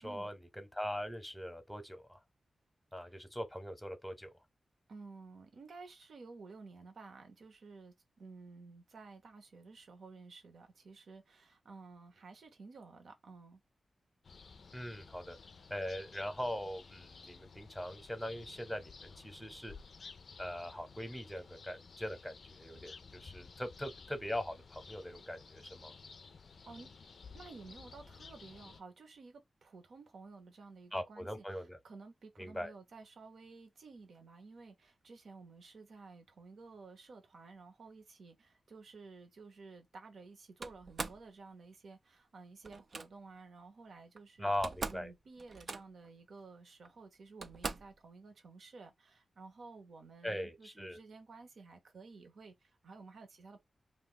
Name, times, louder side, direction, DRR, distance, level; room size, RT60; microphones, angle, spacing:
voice 1, 0.0-2.2 2.9-4.3 14.7-15.4 15.7-19.7 20.4-25.9 30.9-31.8 32.4-32.7 44.4-45.1 50.2-51.0, left 1 dB, 5° left, 0.8 m, -41 dB
voice 2, 4.9-13.6 26.7-26.9 27.3-31.4 31.8-44.5 44.9-53.6, right 4 dB, 75° right, 0.9 m, -53 dB
sound 1, 14.2-28.8, left 5 dB, 65° left, 0.4 m, -54 dB
Slam, 40.6-41.3 42.6-43.1 44.2-44.3 44.5-45.1 45.4-46.1 46.8-46.9 47.4-48.0, right 4 dB, 60° right, 0.4 m, -42 dB
2.5 x 2.2 x 3.8 m
cardioid pair, 55°, 0 cm